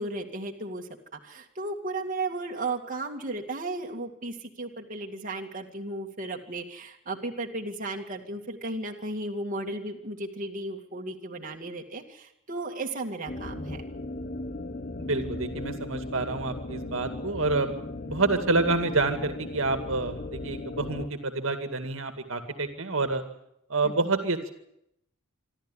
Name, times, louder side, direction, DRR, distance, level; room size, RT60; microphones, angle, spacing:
voice 1, 0.0-13.8 23.8-23.9, right 2 dB, 40° right, 1 dB, 2.2 m, -35 dB
sound 1, 13.3-21.1, left 2 dB, 40° left, 0.9 m, -37 dB
voice 2, 15.0-17.7 18.0-23.2 23.7-24.5, right 3 dB, 65° right, 7 dB, 2.2 m, -28 dB
26.0 x 13.0 x 9.9 m, 0.78 s
head